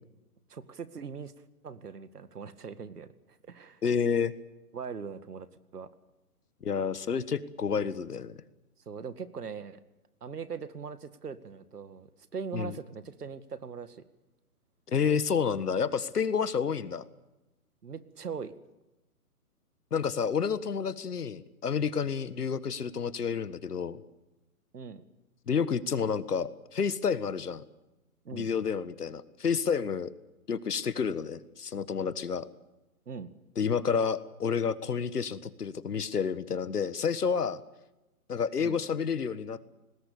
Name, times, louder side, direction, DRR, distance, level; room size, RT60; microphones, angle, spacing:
voice 1, 0.5-1.3 1.6-3.1 3.5-3.8 4.7-5.5 5.7-5.9 8.9-9.8 10.2-14.0 17.8-18.5 24.7-25.0 28.3-28.5 33.1-33.3 38.6-38.8, right 6 dB, 80° right, 13 dB, 2.0 m, -40 dB
voice 2, 3.8-4.3 6.6-8.4 12.5-12.7 14.9-17.0 19.9-24.0 25.5-27.6 28.3-30.1 30.5-32.5 33.6-37.6 38.3-39.6, left 6 dB, 80° left, 15 dB, 1.7 m, -30 dB
27.0 x 19.5 x 7.0 m, 1.0 s
hypercardioid pair, 175°, 46 cm